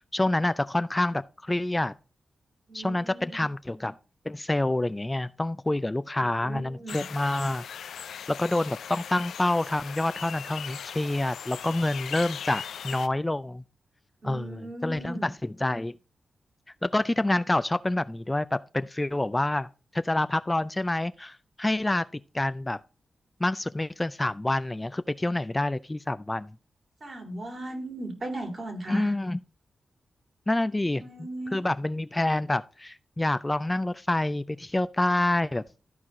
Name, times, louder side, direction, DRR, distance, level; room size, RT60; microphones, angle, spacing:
voice 1, 0.1-1.9 2.7-3.9 4.3-7.6 8.3-13.6 14.2-15.9 16.8-22.0 22.3-22.8 23.4-26.5 28.9-29.4 30.5-35.6, left 1 dB, 20° left, 0.4 m, -27 dB
voice 2, 2.7-3.5 6.2-7.0 14.2-15.3 27.0-29.1 31.0-31.6, right 1 dB, 50° right, 2.9 m, -38 dB
sound 1, 6.9-13.1, left 8 dB, 90° left, 0.4 m, -39 dB
13.5 x 4.7 x 3.6 m
cardioid pair, 55°, 0 cm